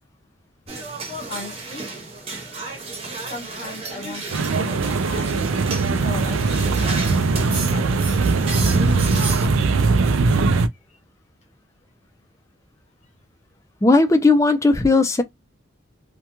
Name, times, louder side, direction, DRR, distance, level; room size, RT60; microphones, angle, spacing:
sound 1, 0.7-9.5, right 3 dB, 30° right, 0.8 m, -33 dB
voice 1, 1.3-1.8 3.2-5.4 6.0-8.0 10.9-11.0, left 2 dB, 35° left, 0.7 m, -37 dB
sound 2, 4.3-10.7, right 3 dB, 85° right, 0.4 m, -20 dB
voice 2, 13.8-15.2, left 3 dB, 15° left, 0.3 m, -16 dB
2.3 x 2.2 x 2.9 m
head